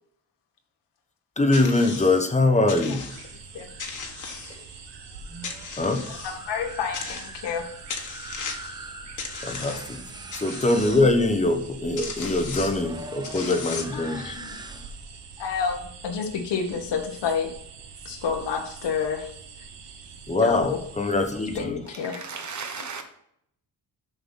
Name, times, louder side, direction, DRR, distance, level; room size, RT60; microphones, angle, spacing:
voice 1, 1.4-3.0 5.8-6.1 9.4-10.0 10.3-14.3 20.3-21.8 22.1-22.2, left 2 dB, 15° left, 1.0 m, -23 dB
sound 1, 1.5-2.2 2.7-3.4 3.8-4.9 5.4-6.4 6.9-7.6 7.9-8.8 9.2-10.0 10.3-11.0 11.7-11.8 12.0-12.8 13.2-14.1, left 5 dB, 45° left, 1.5 m, -37 dB
sound 2, 3.1-21.6, right 5 dB, 80° right, 1.3 m, -44 dB
sound 3, 5.1-15.2, right 2 dB, 10° right, 0.7 m, -42 dB
voice 2, 6.2-7.6 9.7-9.8 12.5-12.7 13.9-14.5 15.4-17.5 18.0-19.3 20.4-20.8 21.5-22.2, left 6 dB, 85° left, 1.5 m, -29 dB
voice 3, 21.9-23.0, right 5 dB, 45° right, 1.4 m, -36 dB
7.0 x 5.9 x 5.6 m
cardioid pair, 125°, 41 cm